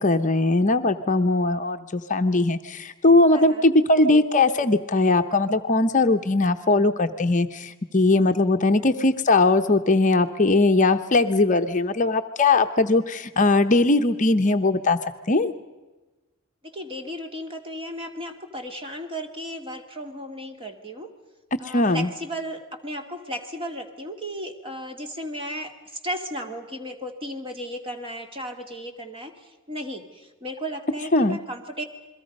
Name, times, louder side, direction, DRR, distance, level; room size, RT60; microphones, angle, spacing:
voice 1, 0.0-15.0 15.3-15.5 21.7-22.1 31.1-31.4, left 2 dB, 35° left, 7 dB, 0.8 m, -20 dB
voice 2, 3.3-3.7 16.6-21.1 21.6-31.8, equal, 25° right, 4 dB, 2.2 m, -35 dB
29.0 x 22.0 x 5.3 m, 1.2 s
head